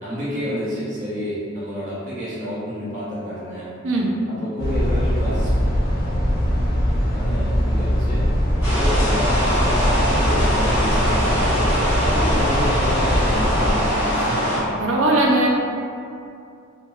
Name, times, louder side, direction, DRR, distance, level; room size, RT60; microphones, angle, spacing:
voice 1, 0.0-3.7 4.3-5.5 7.1-8.3 8.6-11.6 12.0-14.7, equal, 40° right, -11 dB, 0.8 m, -29 dB
sound 1, 4.6-13.7, equal, 50° left, 0.5 m, -21 dB
sound 2, 8.6-14.6, equal, 10° right, 0.9 m, -22 dB
voice 2, 14.8-15.5, right 2 dB, 70° right, -1 dB, 0.5 m, -18 dB
2.9 x 2.6 x 2.4 m, 2.4 s
head